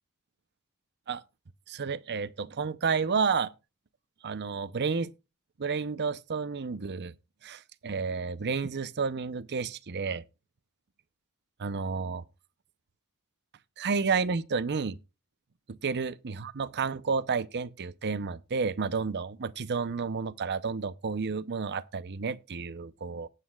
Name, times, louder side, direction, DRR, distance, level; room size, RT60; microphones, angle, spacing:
voice 1, 1.7-3.5 4.2-5.1 5.6-7.1 7.4-10.2 11.6-12.2 13.8-15.0 15.7-23.3, right 5 dB, 50° right, 0.6 m, -31 dB
18.5 x 8.4 x 2.3 m
head